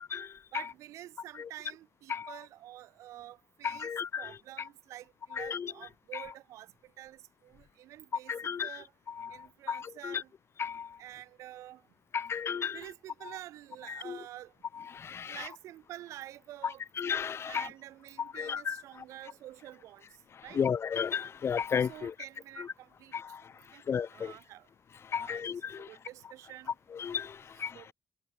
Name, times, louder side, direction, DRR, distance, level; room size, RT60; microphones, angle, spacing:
voice 1, 0.0-0.7 1.4-1.5 2.1-2.4 3.6-4.3 4.6-4.7 5.3-5.7 6.1-6.3 8.3-10.2 10.6-11.0 12.1-12.8 13.9-14.2 14.7-15.5 16.6-17.7 18.2-19.0 20.3-22.1 22.6-22.7 23.1-24.3 25.0-25.9 26.9-27.9, left 7 dB, 55° left, 0.5 m, -35 dB
voice 2, 0.5-3.9 4.2-8.9 9.3-10.3 11.0-11.8 12.7-14.5 15.3-16.8 17.5-20.1 20.4-20.6 21.8-23.1 23.7-23.8 24.1-24.7 25.1-26.7 27.7-27.9, right 14 dB, 85° right, 2.2 m, -48 dB
supercardioid pair, 45°, 5 cm